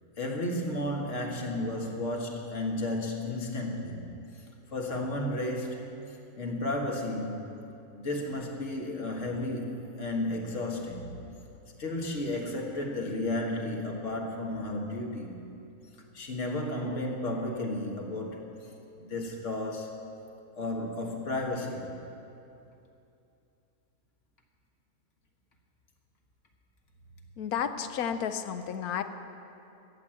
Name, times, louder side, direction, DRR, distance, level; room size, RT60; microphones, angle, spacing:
voice 1, 0.2-4.1 4.7-6.0 6.4-7.4 8.0-11.1 11.8-15.5 16.1-18.7 19.0-20.0 20.5-22.0, left 1 dB, 55° left, 1 dB, 1.8 m, -33 dB
voice 2, 27.4-29.0, left 8 dB, 80° left, 9 dB, 1.2 m, -32 dB
14.0 x 8.7 x 7.6 m, 2.7 s
omnidirectional pair, 1.5 m